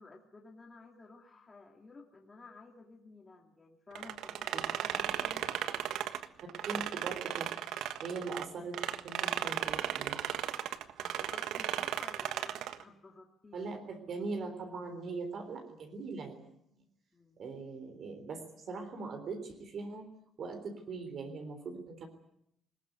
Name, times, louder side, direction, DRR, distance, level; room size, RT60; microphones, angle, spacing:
voice 1, 0.0-6.0 11.0-13.6 17.1-17.4, left 3 dB, 20° left, 0 dB, 2.5 m, -54 dB
sound 1, 4.0-8.5 8.7-12.8, right 11 dB, 85° right, 1.4 m, -35 dB
voice 2, 6.7-7.5 8.0-8.8 9.0-10.2 13.5-16.5 17.4-20.1 20.4-22.1, right 4 dB, 45° right, 6 dB, 3.7 m, -41 dB
21.0 x 20.5 x 9.4 m, 0.75 s
cardioid pair, 180°, 0 cm